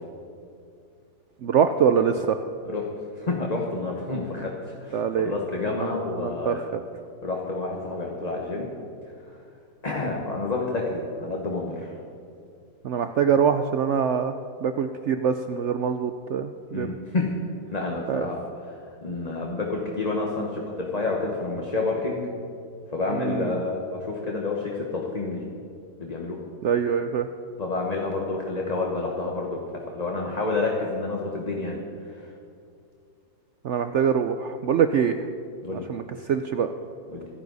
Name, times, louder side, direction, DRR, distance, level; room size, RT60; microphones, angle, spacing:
voice 1, 1.4-2.4 4.9-5.3 5.8-5.9 6.2-6.6 12.8-14.3 14.6-17.0 18.1-18.3 23.2-23.5 26.6-27.3 33.6-35.2 35.9-36.0 36.3-36.7, right 7 dB, 65° right, 8 dB, 0.7 m, -24 dB
voice 2, 3.1-4.5 4.8-6.8 7.2-8.7 9.8-12.0 16.7-17.3 17.7-22.3 22.9-25.4 26.0-26.4 27.6-31.8 32.1-32.3 35.6-35.9 37.1-37.3, left 3 dB, 25° left, -1 dB, 1.3 m, -29 dB
25.5 x 9.8 x 4.1 m, 2.4 s
omnidirectional pair, 1.7 m